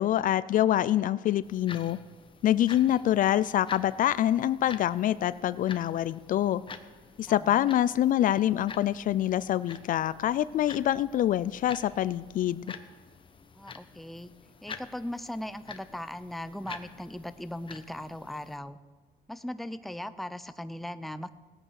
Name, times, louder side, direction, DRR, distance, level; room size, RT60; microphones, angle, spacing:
voice 1, 0.0-2.0 2.4-6.6 7.2-12.6, left 12 dB, 55° left, 17 dB, 0.4 m, -25 dB
sound 1, 1.4-18.6, left 5 dB, 30° left, 1.1 m, -48 dB
voice 2, 7.3-7.7 13.5-14.3 14.6-18.8 19.3-21.3, left 1 dB, ahead, 12 dB, 0.5 m, -38 dB
17.5 x 8.9 x 6.5 m, 1.4 s
cardioid pair, 110°, 17 cm